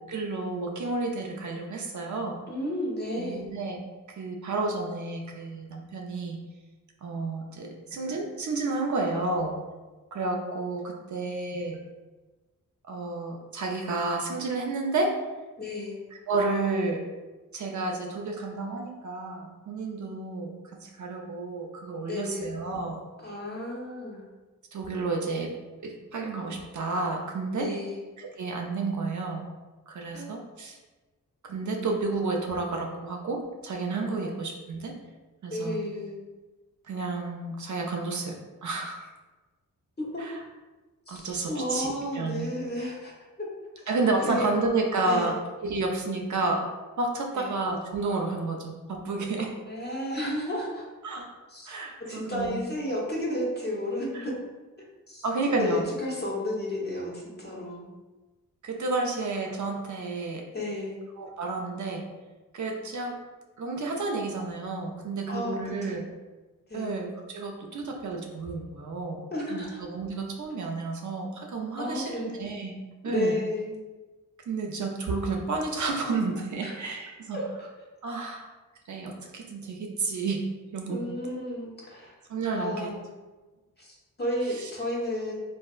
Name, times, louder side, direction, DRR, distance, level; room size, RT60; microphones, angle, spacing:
voice 1, 0.1-2.4 3.2-3.8 4.2-6.4 7.0-9.5 10.1-11.8 12.9-15.1 16.3-17.0 17.5-23.0 24.7-25.5 25.8-27.7 28.2-29.4 29.9-30.8 31.5-34.9 35.4-35.8 36.9-38.4 38.6-39.0 40.2-40.4 41.1-42.5 43.9-45.3 45.6-46.6 47.0-49.5 51.0-51.4 51.7-52.6 54.1-54.3 55.2-55.8 58.6-60.4 61.2-62.1 62.5-63.2 63.6-66.1 66.7-69.2 69.5-72.7 73.0-73.4 74.5-77.4 78.0-78.5 78.9-80.4 80.7-81.0 82.3-82.9 84.6-84.7, right 3 dB, 55° right, 1 dB, 0.5 m, -31 dB
voice 2, 2.5-3.5 9.0-9.2 15.6-16.0 22.1-22.6 23.2-24.2 27.6-28.0 30.1-30.3 34.2-34.3 35.5-36.2 40.0-40.3 41.1-43.1 44.2-44.5 45.0-45.4 47.3-47.6 49.6-50.8 51.5-51.8 52.1-54.4 55.1-57.9 60.5-61.0 65.3-66.0 66.7-67.0 69.3-69.8 71.8-72.4 73.0-73.8 76.6-76.7 77.3-77.7 80.9-82.1 82.5-83.0 83.8-85.3, left 1 dB, 30° left, -4 dB, 1.1 m, -32 dB
3.4 x 2.5 x 2.4 m, 1.2 s
cardioid pair, 55°, 34 cm